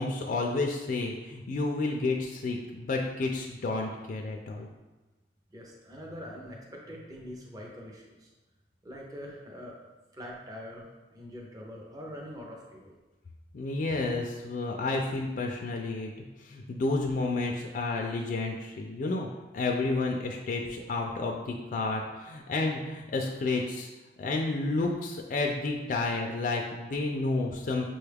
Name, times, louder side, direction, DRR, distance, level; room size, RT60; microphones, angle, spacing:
voice 1, 0.0-4.7 13.5-16.1 16.4-19.3 19.5-23.9 24.2-27.8, left 3 dB, 50° left, 0 dB, 0.4 m, -31 dB
voice 2, 5.5-8.3 8.8-9.8 10.1-10.8 11.1-12.9, equal, 20° right, -1 dB, 0.5 m, -43 dB
6.0 x 2.3 x 3.3 m, 1.2 s
head